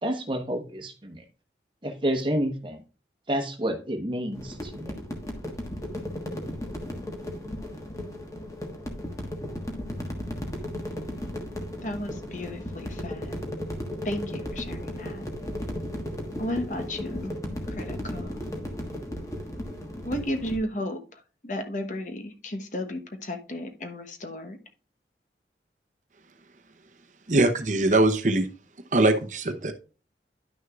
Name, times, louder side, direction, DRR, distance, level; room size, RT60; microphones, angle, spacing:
voice 1, 0.0-1.2 1.8-2.8 3.3-4.9, right 1 dB, 30° right, 5 dB, 1.1 m, -29 dB
sound 1, 4.3-20.6, left 1 dB, 20° left, 1.3 m, -35 dB
voice 2, 11.8-13.4 14.0-15.2 16.4-17.3 17.8-18.3 20.0-21.0 21.4-24.6, left 1 dB, 45° left, 7 dB, 1.0 m, -33 dB
voice 3, 27.3-28.5 28.9-29.7, right 2 dB, 45° right, 8 dB, 0.7 m, -22 dB
10.5 x 6.3 x 2.4 m, 0.34 s
head